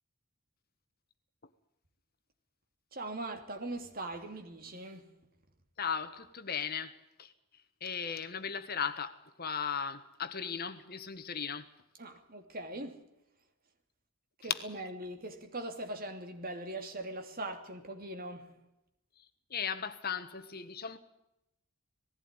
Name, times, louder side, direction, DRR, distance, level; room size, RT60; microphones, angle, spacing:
voice 1, 2.9-5.1 12.0-13.0 14.4-18.5, right 2 dB, 45° right, 2.8 m, -41 dB
voice 2, 5.8-7.3 7.8-11.7 14.4-14.6 19.2-19.3 19.5-21.0, left 7 dB, 45° left, 1.4 m, -37 dB
19.0 x 15.5 x 9.8 m
head